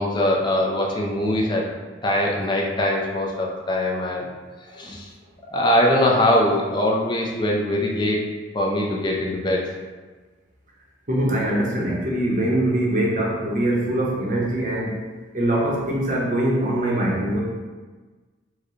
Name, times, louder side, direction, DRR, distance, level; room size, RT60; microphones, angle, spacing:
voice 1, 0.0-1.6 2.0-4.2 4.8-5.1 5.5-8.2 8.5-9.6, left 1 dB, 25° left, -2 dB, 0.4 m, -22 dB
voice 2, 11.1-15.0 15.3-17.4, right 1 dB, 40° right, -3 dB, 0.8 m, -23 dB
4.6 x 2.2 x 3.1 m, 1.3 s
head